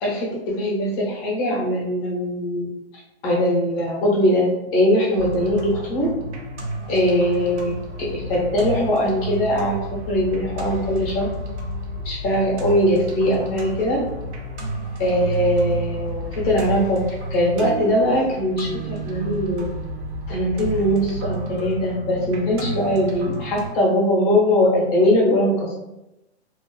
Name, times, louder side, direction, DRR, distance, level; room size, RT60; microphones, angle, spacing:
voice 1, 0.0-2.7 3.2-6.1 6.9-7.7 8.0-11.3 12.0-14.0 15.0-17.0 17.3-19.7 20.3-25.7, equal, 35° left, -4 dB, 0.9 m, -21 dB
sound 1, 5.2-23.7, right 1 dB, 85° right, 0.7 m, -31 dB
2.5 x 2.3 x 2.3 m, 0.94 s
hypercardioid pair, 150°, 33 cm